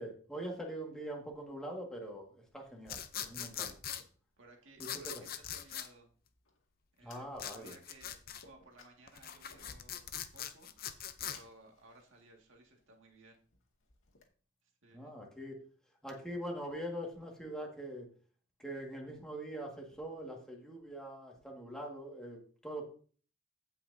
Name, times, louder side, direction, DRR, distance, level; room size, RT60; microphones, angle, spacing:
voice 1, 0.0-3.7 4.8-5.2 7.0-7.8 14.9-15.6 16.0-18.1 18.6-22.9, right 1 dB, 5° left, -1 dB, 1.9 m, -43 dB
Fire, 1.3-14.3, left 3 dB, 80° left, 2.1 m, -65 dB
sound 1, 2.9-4.0 4.8-5.9 7.4-8.4 9.1-11.4, left 9 dB, 45° left, 0.7 m, -42 dB
voice 2, 3.4-3.8 4.4-5.1 5.5-6.1 6.9-7.2 7.5-13.4 14.6-15.1, right 2 dB, 70° right, 1 dB, 2.0 m, -60 dB
16.0 x 5.8 x 2.7 m, 0.43 s
head